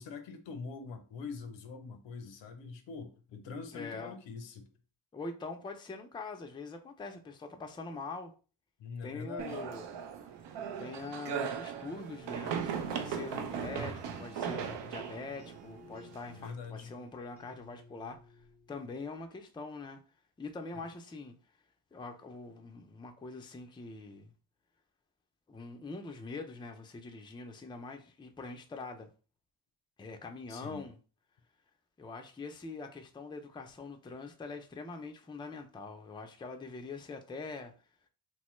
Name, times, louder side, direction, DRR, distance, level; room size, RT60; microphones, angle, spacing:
voice 1, 0.0-4.7 8.8-9.7 16.3-16.9 20.7-20.9 30.5-30.9, left 5 dB, 85° left, 0.7 m, -44 dB
voice 2, 3.7-4.2 5.1-8.3 9.0-9.8 10.8-18.2 18.7-20.0 20.4-21.3 21.9-24.3 25.5-29.1 30.0-31.0 32.0-37.7, left 3 dB, 10° left, 0.4 m, -43 dB
sound 1, 9.4-16.5, right 7 dB, 70° right, 0.6 m, -38 dB
sound 2, 11.9-19.4, left 1 dB, 20° right, 1.1 m, -56 dB
3.0 x 2.1 x 3.0 m
cardioid pair, 80°, 43 cm